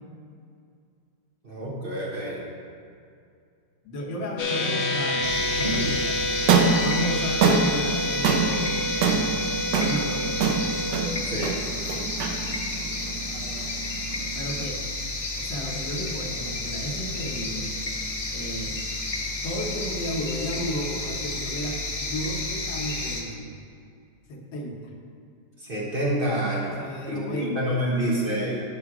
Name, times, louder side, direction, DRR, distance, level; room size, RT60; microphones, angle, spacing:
voice 1, 1.4-2.4 5.6-5.8 11.2-11.6 25.6-26.8 27.1-28.6, right 1 dB, 35° right, -4 dB, 1.2 m, -28 dB
voice 2, 3.8-6.3 6.8-9.3 9.7-10.4 14.4-14.8 15.4-17.7 18.3-18.8 19.4-23.5 24.3-24.8 26.8-28.1, equal, 85° left, 0 dB, 1.8 m, -33 dB
sound 1, 4.4-11.1, left 1 dB, 70° left, 1.7 m, -29 dB
sound 2, 5.2-23.2, left 2 dB, 40° left, 0.5 m, -31 dB
sound 3, 6.3-14.6, right 5 dB, 75° right, 1.4 m, -25 dB
11.0 x 4.7 x 4.8 m, 2.4 s
omnidirectional pair, 1.9 m